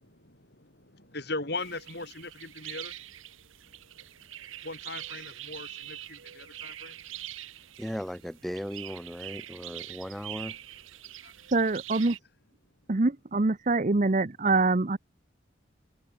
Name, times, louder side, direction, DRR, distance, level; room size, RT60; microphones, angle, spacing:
voice 1, 1.1-2.3 2.6-2.9 4.7-5.7 6.6-6.9, left 3 dB, 55° left, 5.4 m, -36 dB
sound 1, 1.6-12.2, right 13 dB, 85° right, 1.1 m, -44 dB
voice 2, 7.8-10.6, equal, ahead, 0.6 m, -37 dB
voice 3, 11.5-12.2 12.9-15.0, right 3 dB, 40° right, 0.7 m, -24 dB
head